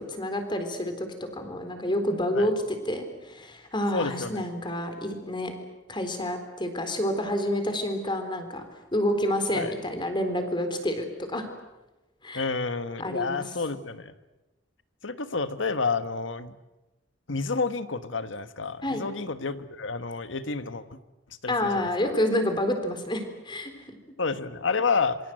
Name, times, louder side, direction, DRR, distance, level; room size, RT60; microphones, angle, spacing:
voice 1, 0.0-5.5 5.9-8.6 8.9-11.5 12.2-12.5 13.0-13.4 18.8-19.0 21.5-24.0, left 1 dB, 25° left, 7 dB, 3.9 m, -28 dB
voice 2, 3.9-4.5 9.5-9.7 12.3-14.1 15.0-16.5 17.3-21.0 21.4-22.1 24.2-25.2, left 4 dB, 85° left, 11 dB, 1.5 m, -30 dB
27.0 x 24.0 x 7.8 m, 1.1 s
head